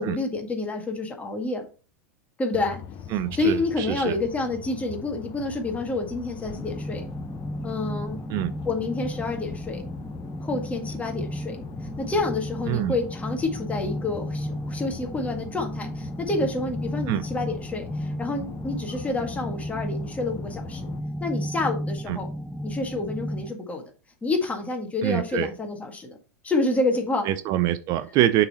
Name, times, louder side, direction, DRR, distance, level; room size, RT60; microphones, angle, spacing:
voice 1, 0.0-1.7 2.4-2.8 3.3-7.0 7.6-8.2 8.7-9.9 10.4-11.6 11.8-20.9 21.2-22.3 22.6-23.8 24.2-26.2 26.4-27.3, left 2 dB, 15° left, 4 dB, 1.8 m, -28 dB
sound 1, 2.5-21.0, left 8 dB, 45° left, 0.8 m, -41 dB
voice 2, 3.1-4.2 8.3-8.5 12.7-13.0 17.1-17.2 22.1-22.2 25.0-25.5 27.2-28.4, right 13 dB, 45° right, 13 dB, 0.5 m, -25 dB
sound 2, 6.5-23.5, equal, ahead, 0.5 m, -34 dB
6.7 x 3.9 x 4.4 m, 0.36 s
hypercardioid pair, 100°, 9 cm